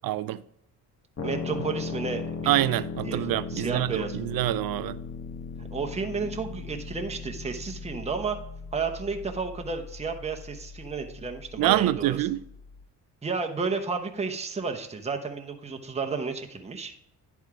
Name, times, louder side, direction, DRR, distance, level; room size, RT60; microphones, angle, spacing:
voice 1, 0.0-0.4 2.5-5.0 11.6-12.4, right 15 dB, 60° right, 0.5 m, -26 dB
sound 1, 1.2-12.8, left 4 dB, 40° left, 1.4 m, -38 dB
voice 2, 1.2-2.5 3.0-3.2 3.5-4.2 5.7-8.4 8.7-12.2 13.2-16.9, right 4 dB, 15° right, 0.9 m, -32 dB
10.5 x 3.6 x 4.8 m
cardioid pair, 80°, 39 cm